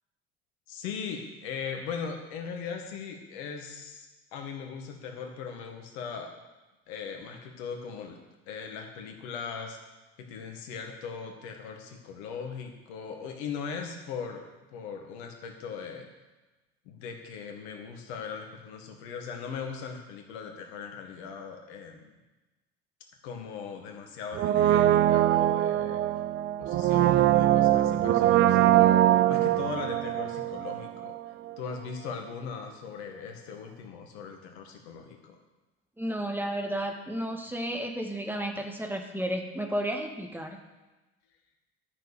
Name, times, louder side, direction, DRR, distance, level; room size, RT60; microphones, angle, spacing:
voice 1, 0.7-4.1 4.3-6.3 6.9-8.2 8.5-9.8 10.2-14.5 14.7-16.1 16.9-22.2 23.2-26.0 26.6-31.2 31.6-35.4, left 6 dB, 65° left, 3 dB, 1.9 m, -39 dB
Brass instrument, 24.3-31.2 31.5-31.6, right 13 dB, 35° right, 0.5 m, -23 dB
voice 2, 36.0-40.6, right 1 dB, 5° right, 2 dB, 1.7 m, -32 dB
13.0 x 6.7 x 6.9 m, 1.1 s
figure-of-eight pair, 65°, 36 cm